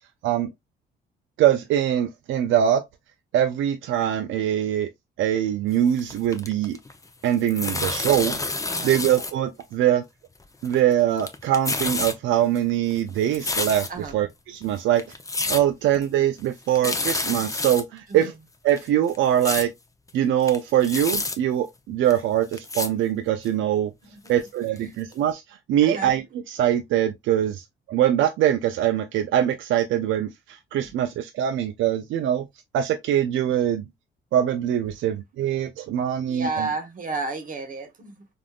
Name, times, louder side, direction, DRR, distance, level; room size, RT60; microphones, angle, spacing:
voice 1, 1.4-2.8 3.3-4.9 5.2-6.8 7.2-8.4 8.8-10.0 10.6-15.0 15.5-18.3 18.6-19.7 20.1-23.9 24.3-32.5 32.7-33.8 34.3-36.7, right 11 dB, 75° right, 0.4 m, -23 dB
sound 1, 5.8-7.0 7.2-9.3 9.6-9.7 10.4-10.9 11.2-12.1 12.6-14.1 14.6-14.7 15.0-15.6 15.9-16.0 16.4-16.5 16.7-17.8 18.2-18.3 18.7-19.7 20.1-20.2 20.4-21.4 22.1-22.2 22.5-22.9 23.4-23.5 24.3-24.4 24.8-24.9 25.1-25.2, left 3 dB, 15° left, 0.5 m, -29 dB
voice 2, 8.7-9.0 13.9-14.2 18.1-18.3 24.1-24.4 24.9-25.0 25.8-26.2 36.3-38.3, right 3 dB, 45° right, 1.0 m, -32 dB
3.4 x 2.5 x 2.3 m
cardioid pair, 90°, 20 cm